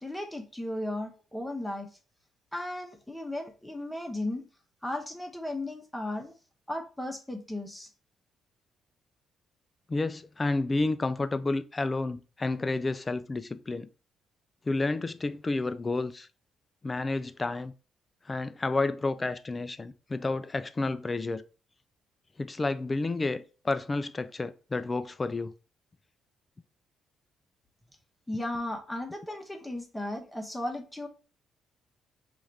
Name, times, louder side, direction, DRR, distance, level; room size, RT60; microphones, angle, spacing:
voice 1, 0.0-1.9 2.5-4.5 4.8-6.4 6.7-7.9 28.3-31.1, left 1 dB, 5° left, 0.9 m, -35 dB
voice 2, 9.9-13.9 14.7-16.3 16.8-17.7 18.3-21.4 22.4-25.5, left 3 dB, 25° left, 0.4 m, -30 dB
5.5 x 2.5 x 3.2 m
cardioid pair, 90°, 0 cm